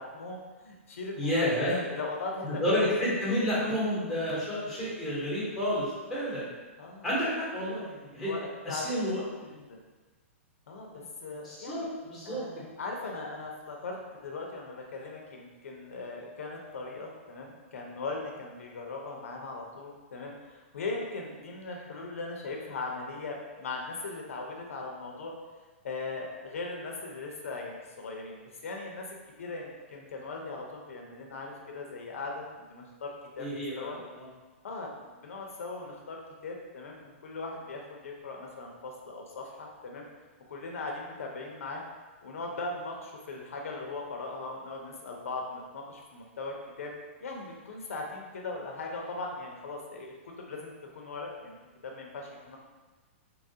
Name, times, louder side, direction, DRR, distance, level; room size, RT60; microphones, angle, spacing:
voice 1, 0.0-2.6 6.8-7.1 8.2-9.3 9.7-9.8 10.7-11.9 12.2-25.3 25.8-33.5 33.8-34.0 34.6-40.1 40.5-41.8 42.2-46.9 47.2-51.6 51.8-52.6, left 3 dB, 85° left, 0 dB, 0.6 m, -39 dB
voice 2, 1.2-1.8 2.4-6.5 7.0-8.3 8.6-9.2 9.5-9.6 10.9-11.0 11.4-12.4 33.4-34.3, equal, ahead, -8 dB, 1.0 m, -30 dB
2.9 x 2.4 x 2.7 m, 1.2 s
hypercardioid pair, 155°, 7 cm